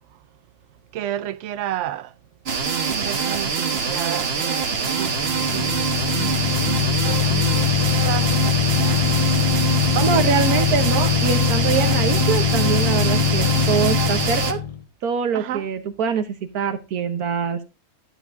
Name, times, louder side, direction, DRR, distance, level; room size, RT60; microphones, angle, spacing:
voice 1, 0.9-2.1 2.9-9.0 9.9-10.3 15.3-15.7, right 12 dB, 65° right, 0.9 m, -32 dB
sound 1, 2.5-14.5, right 5 dB, 45° right, 1.3 m, -24 dB
sound 2, 4.9-14.8, left 8 dB, 60° left, 0.4 m, -22 dB
voice 2, 10.0-14.6 15.0-17.6, right 6 dB, 85° right, 1.5 m, -24 dB
12.0 x 8.3 x 2.5 m
omnidirectional pair, 1.5 m